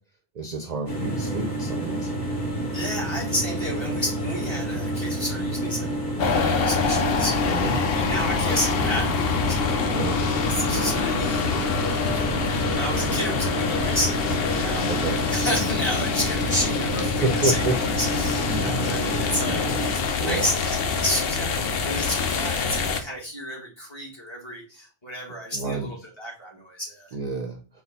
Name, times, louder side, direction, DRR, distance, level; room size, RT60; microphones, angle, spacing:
voice 1, 0.3-2.2 7.5-7.8 9.9-10.2 14.9-15.2 17.0-17.8 18.5-19.0 20.2-20.5 25.5-25.9 27.1-27.8, right 3 dB, 50° right, 3 dB, 0.6 m, -29 dB
sound 1, 0.9-19.9, right 1 dB, 45° left, 2.2 m, -29 dB
voice 2, 2.7-7.5 7.9-10.0 10.4-14.9 15.3-27.1, equal, 25° left, -3 dB, 1.8 m, -31 dB
sound 2, 6.2-23.0, left 5 dB, 65° left, 0.8 m, -26 dB
4.2 x 2.4 x 4.0 m, 0.35 s
omnidirectional pair, 1.1 m